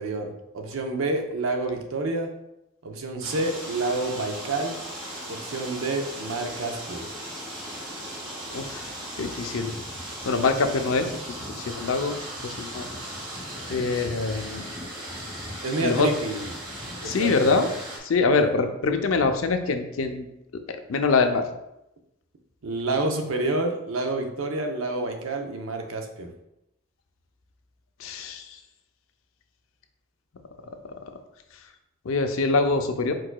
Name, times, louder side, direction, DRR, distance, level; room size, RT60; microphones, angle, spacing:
voice 1, 0.0-2.3 2.8-4.8 5.3-7.1 15.6-16.5 17.0-17.6 18.4-18.5 22.6-26.3, right 2 dB, 90° right, 4 dB, 0.7 m, -28 dB
sound 1, 3.2-18.0, equal, 20° right, 1.0 m, -37 dB
voice 2, 8.5-8.9 9.2-9.8 10.2-12.1 12.4-12.9 13.7-14.7 15.8-16.1 17.0-17.7 18.0-20.3 20.7-21.5 28.0-28.6 32.0-33.1, left 4 dB, 80° left, 7 dB, 0.5 m, -24 dB
4.7 x 4.6 x 2.2 m, 0.86 s
head